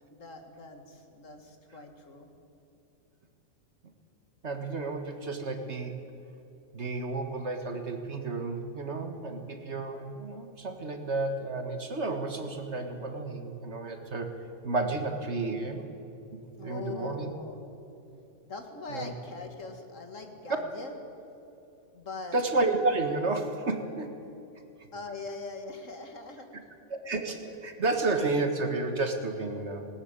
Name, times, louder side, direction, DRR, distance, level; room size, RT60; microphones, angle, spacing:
voice 1, 0.1-2.3 16.6-17.7 18.4-20.9 21.9-22.4 24.9-26.5, left 3 dB, 60° left, 5 dB, 2.4 m, -41 dB
voice 2, 4.4-6.0 6.7-14.4 14.6-15.9 16.3-17.3 18.9-19.1 22.3-24.2 26.9-29.9, right 3 dB, 50° right, 6 dB, 1.9 m, -31 dB
19.0 x 19.0 x 8.9 m, 2.9 s
omnidirectional pair, 1.5 m